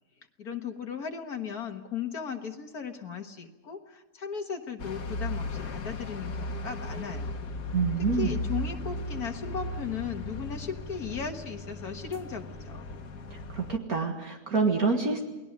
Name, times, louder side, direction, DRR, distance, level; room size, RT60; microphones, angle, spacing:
voice 1, 0.4-7.4 8.2-12.8, left 6 dB, 70° left, 4 dB, 1.9 m, -36 dB
sound 1, 4.8-13.8, left 2 dB, 85° left, 2.1 m, -36 dB
voice 2, 7.7-8.3 13.3-15.3, right 4 dB, 60° right, 2 dB, 2.3 m, -27 dB
29.0 x 20.0 x 5.3 m, 1.1 s
omnidirectional pair, 1.7 m